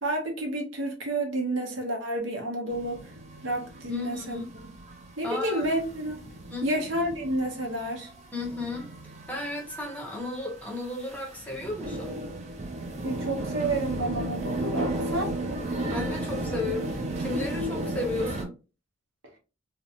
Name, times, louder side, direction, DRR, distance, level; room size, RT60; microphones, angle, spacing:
voice 1, 0.0-3.1 3.4-4.4 5.2-6.2 6.6-8.1 13.0-15.3, right 1 dB, 65° right, 1 dB, 0.8 m, -30 dB
sound 1, 2.7-18.4, right 1 dB, 35° right, 0.5 m, -35 dB
voice 2, 3.9-4.6 5.2-5.6 6.5-6.8 8.3-12.2 15.9-18.5, left 2 dB, 5° left, -2 dB, 0.7 m, -34 dB
2.5 x 2.1 x 2.7 m, 0.32 s
head